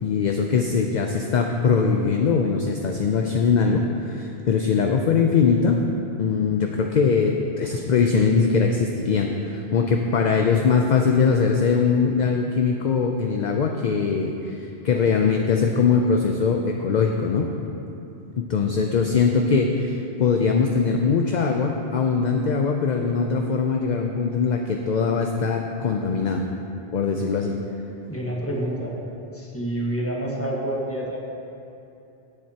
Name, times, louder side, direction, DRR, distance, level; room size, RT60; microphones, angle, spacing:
voice 1, 0.0-5.8 6.2-17.5 18.4-26.4 26.9-27.6, left 5 dB, 50° left, 3 dB, 0.6 m, -21 dB
voice 2, 28.0-29.0 29.3-31.2, right 1 dB, 15° left, -3 dB, 1.4 m, -28 dB
16.5 x 7.5 x 2.8 m, 2.7 s
omnidirectional pair, 1.1 m